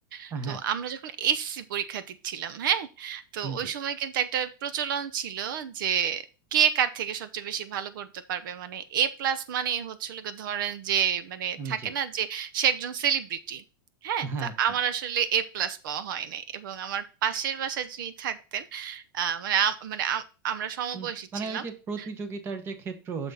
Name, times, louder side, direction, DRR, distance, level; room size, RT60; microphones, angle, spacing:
voice 1, 0.1-6.2 6.5-13.6 14.0-21.6 22.0-22.1, right 8 dB, 65° right, 13 dB, 0.7 m, -29 dB
voice 2, 11.6-11.9 14.2-14.5 20.9-23.3, right 4 dB, 20° right, 9 dB, 1.0 m, -35 dB
6.9 x 6.0 x 4.1 m, 0.33 s
supercardioid pair, 175°, 12 cm